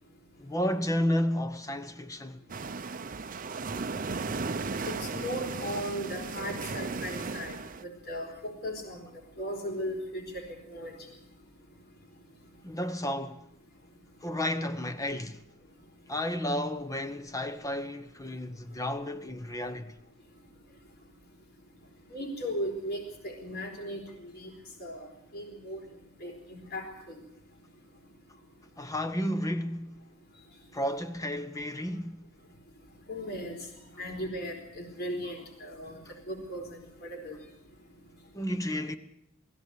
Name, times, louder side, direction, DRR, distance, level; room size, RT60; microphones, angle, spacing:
voice 1, 0.4-2.5 12.6-13.5 14.2-15.5 16.1-20.0 28.8-30.0 30.7-32.2 38.3-39.0, left 1 dB, 15° left, 1.1 m, -32 dB
sound 1, 2.5-7.8, right 4 dB, 40° right, 0.7 m, -35 dB
voice 2, 4.8-7.6 7.8-9.0 9.4-10.9 22.1-24.5 24.8-25.1 25.3-25.8 26.2-27.2 33.1-33.5 34.0-36.0 36.3-37.4, equal, 50° left, 4.1 m, -37 dB
20.0 x 16.0 x 8.3 m
head